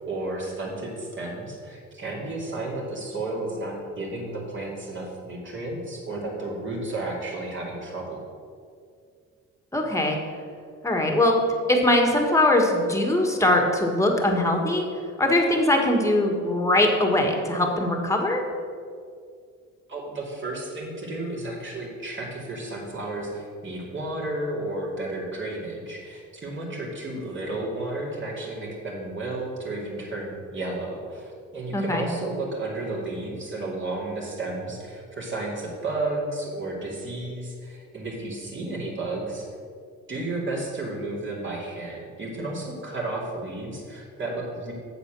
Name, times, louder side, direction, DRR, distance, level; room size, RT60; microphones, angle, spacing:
voice 1, 0.1-8.2 19.9-39.5 40.1-44.7, right 2 dB, 40° right, -3 dB, 2.7 m, -32 dB
voice 2, 9.7-10.2 10.8-11.3 11.7-14.9 15.2-18.4 31.7-32.1, left 1 dB, 10° left, 2 dB, 1.6 m, -21 dB
8.0 x 6.8 x 6.2 m, 2.2 s
cardioid pair, 90°, 30 cm